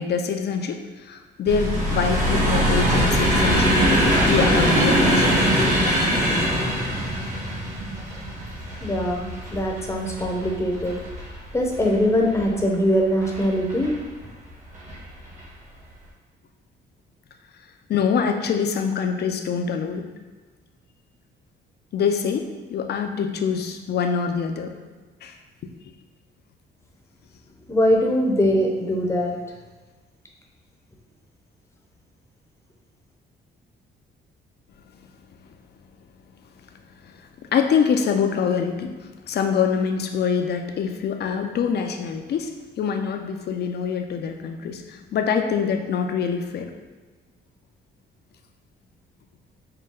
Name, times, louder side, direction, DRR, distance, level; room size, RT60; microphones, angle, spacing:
voice 1, 0.0-3.8 4.3-5.7 17.9-20.0 21.9-24.7 25.2-25.3 37.5-38.9 39.3-46.7, left 6 dB, 55° left, 5 dB, 0.5 m, -25 dB
sound 1, 1.5-12.6 13.2-13.9 14.7-15.0 15.2-15.4, equal, 40° right, 1.4 m, -22 dB
voice 2, 8.8-11.0 11.5-13.9 27.7-29.4, equal, 15° left, 0 dB, 0.7 m, -22 dB
5.4 x 2.2 x 3.8 m, 1.3 s
cardioid pair, 90°, 20 cm